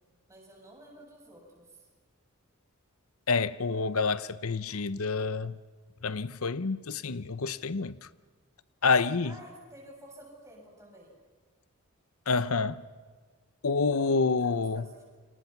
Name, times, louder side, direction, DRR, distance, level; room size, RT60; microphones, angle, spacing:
voice 1, 0.3-1.9 9.2-11.2 14.0-15.0, right 1 dB, 15° right, 7.5 m, -51 dB
voice 2, 3.3-5.5 6.0-8.0 8.8-9.3 12.3-12.8 13.6-14.8, left 4 dB, 80° left, 0.8 m, -28 dB
29.5 x 27.0 x 6.0 m
head